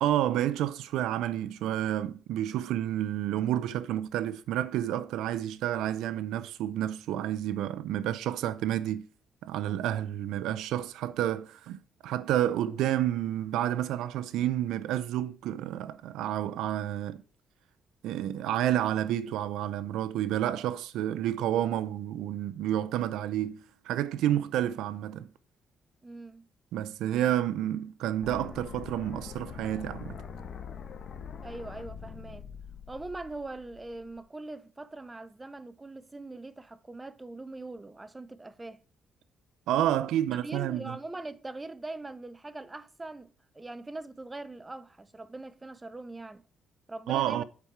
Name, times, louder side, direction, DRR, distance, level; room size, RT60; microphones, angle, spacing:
voice 1, 0.0-9.1 9.4-17.2 18.0-25.3 26.7-30.2 39.7-41.0 47.1-47.4, right 12 dB, 90° right, 0.5 m, -30 dB
voice 2, 26.0-26.5 31.4-32.5 32.9-38.8 40.4-46.4 46.9-47.4, right 2 dB, 20° right, 0.7 m, -42 dB
sound 1, 28.2-34.2, left 7 dB, 60° left, 1.5 m, -43 dB
8.2 x 4.9 x 4.6 m
cardioid pair, 90°, 0 cm